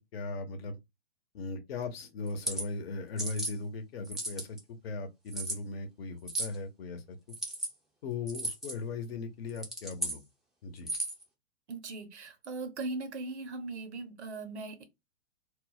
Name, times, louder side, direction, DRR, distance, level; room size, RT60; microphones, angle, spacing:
voice 1, 0.1-0.8 1.3-7.2 8.0-10.2 10.6-10.9, left 3 dB, 55° left, 0.8 m, -38 dB
sound 1, 2.3-2.6 3.2-3.5 4.0-4.6 5.3-5.6 6.3-6.6 7.3-7.7 8.3-8.7 9.5-10.2 10.8-11.2, right 1 dB, ahead, 0.5 m, -35 dB
voice 2, 11.7-14.8, right 3 dB, 70° right, 0.9 m, -39 dB
2.3 x 2.0 x 3.8 m
figure-of-eight pair, 110°, 35 cm